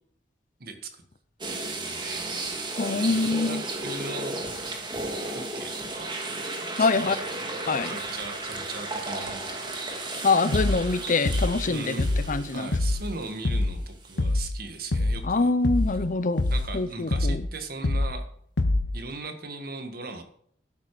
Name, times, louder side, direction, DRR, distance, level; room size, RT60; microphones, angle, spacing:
voice 1, 0.6-1.0 1.5-2.5 3.0-4.6 5.2-6.2 6.8-7.3 7.8-9.8 11.7-12.1 12.5-15.5 16.5-18.2 18.9-20.2, right 3 dB, 55° right, 1.9 m, -38 dB
sound 1, 1.4-13.6 14.1-14.2 16.5-16.6, right 2 dB, 25° right, 2.2 m, -34 dB
voice 2, 2.8-3.6 6.8-7.2 7.7-7.9 10.2-12.7 15.2-16.4 16.7-17.5, left 3 dB, 45° left, 0.7 m, -25 dB
sound 2, 10.5-10.9 11.3-11.6 12.0-12.4 12.7-13.1 13.5-13.8 14.2-14.6 14.9-15.3 15.6-16.0 16.4-16.8 17.1-17.5 17.8-18.2 18.6-19.0, left 2 dB, 85° left, 0.9 m, -25 dB
12.5 x 10.0 x 5.0 m
head